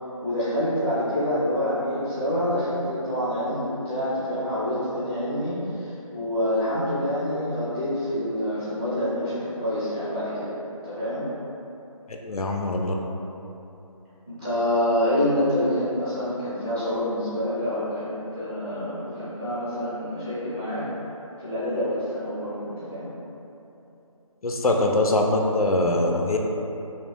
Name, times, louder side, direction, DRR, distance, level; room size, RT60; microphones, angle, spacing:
voice 1, 0.2-10.6 10.8-11.3 14.3-20.9 21.4-23.1, left 1 dB, 10° right, -16 dB, 0.5 m, -27 dB
voice 2, 12.1-12.9 24.4-26.4, left 2 dB, 85° left, 1 dB, 0.5 m, -23 dB
5.3 x 2.2 x 2.5 m, 2.9 s
figure-of-eight pair, 160°, 18 cm